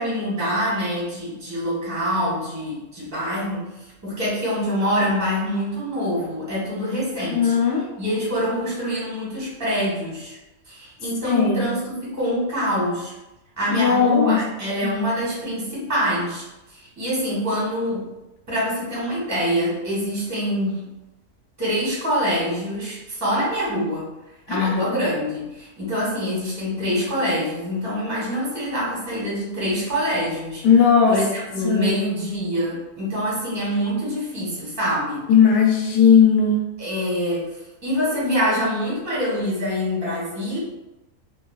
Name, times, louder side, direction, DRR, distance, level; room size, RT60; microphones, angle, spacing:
voice 1, 0.0-3.7 4.0-7.5 8.0-10.4 10.7-13.1 13.6-16.4 16.7-18.1 18.5-20.9 21.6-24.1 24.5-30.6 31.1-35.2 36.8-37.5 37.8-40.6, equal, 15° right, -7 dB, 0.9 m, -25 dB
voice 2, 7.3-7.8 11.2-11.7 13.8-14.4 14.8-14.9 24.5-24.7 30.6-31.2 31.6-31.9 35.3-36.6, left 6 dB, 85° left, -2 dB, 1.2 m, -17 dB
3.1 x 2.2 x 2.3 m, 0.98 s
omnidirectional pair, 1.6 m